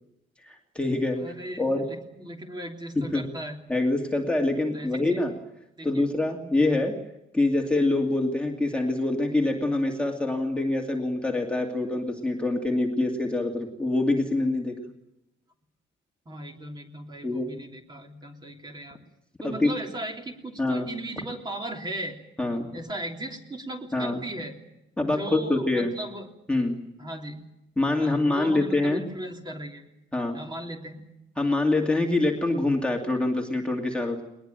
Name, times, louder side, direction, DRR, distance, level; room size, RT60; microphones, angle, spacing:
voice 1, 0.4-1.2 1.6-1.9 3.1-3.2 3.7-5.3 5.8-7.0 7.3-14.8 17.2-17.5 19.4-19.7 20.6-20.9 22.4-22.7 23.9-24.2 25.0-25.9 26.5-26.8 27.8-29.0 30.1-30.4 31.4-34.2, left 2 dB, 5° left, 1 dB, 2.5 m, -25 dB
voice 2, 1.1-3.6 4.7-5.2 5.8-6.0 16.2-19.0 19.4-22.2 22.7-24.5 25.0-26.3 27.0-27.4 27.9-29.8 30.3-31.0, right 1 dB, 20° right, 2 dB, 3.3 m, -37 dB
21.0 x 20.5 x 9.0 m, 0.88 s
cardioid pair, 160°, 20 cm